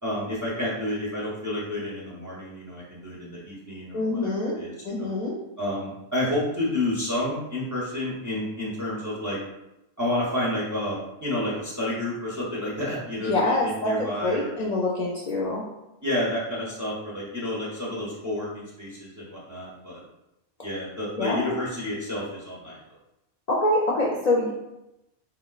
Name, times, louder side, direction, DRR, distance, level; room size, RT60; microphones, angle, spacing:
voice 1, 0.0-5.1 5.6-9.4 10.0-14.7 16.0-20.0 20.6-22.8, left 1 dB, 25° right, -6 dB, 0.5 m, -30 dB
voice 2, 3.9-4.6 4.8-5.4 13.2-15.6 21.2-21.6 23.5-24.5, left 2 dB, 55° left, -5 dB, 0.5 m, -25 dB
3.7 x 2.0 x 2.3 m, 0.92 s
omnidirectional pair, 1.1 m